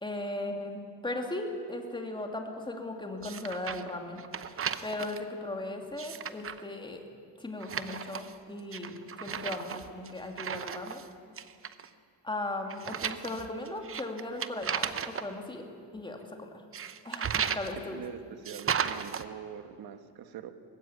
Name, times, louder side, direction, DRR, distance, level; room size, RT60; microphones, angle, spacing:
voice 1, 0.0-4.3 4.8-7.0 7.4-11.0 12.2-15.7 15.9-16.5 17.0-18.0, left 2 dB, 10° left, 3 dB, 2.6 m, -37 dB
sound 1, 3.2-3.9 4.2-5.2 5.8-6.6 7.6-8.4 8.7-11.1 11.4-11.9 12.7-15.3 16.7-17.7 18.4-19.2, right 7 dB, 30° right, 0.8 m, -35 dB
voice 2, 17.9-20.5, right 8 dB, 55° right, 9 dB, 1.5 m, -43 dB
20.5 x 16.0 x 9.9 m, 2.3 s
cardioid pair, 135°, 43 cm